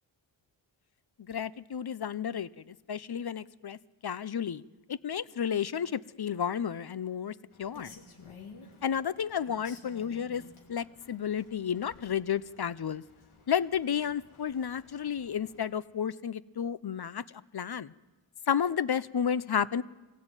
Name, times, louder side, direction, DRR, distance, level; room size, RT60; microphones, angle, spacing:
voice 1, 1.3-4.6 4.9-7.9 8.8-10.4 10.7-13.0 13.5-17.2 17.5-17.9 18.5-19.8, left 8 dB, 50° left, 17 dB, 0.7 m, -32 dB
Rain, 7.5-15.7, left 4 dB, 80° left, 3.2 m, -54 dB
22.0 x 16.5 x 9.0 m, 1.2 s
cardioid pair, 60°, 49 cm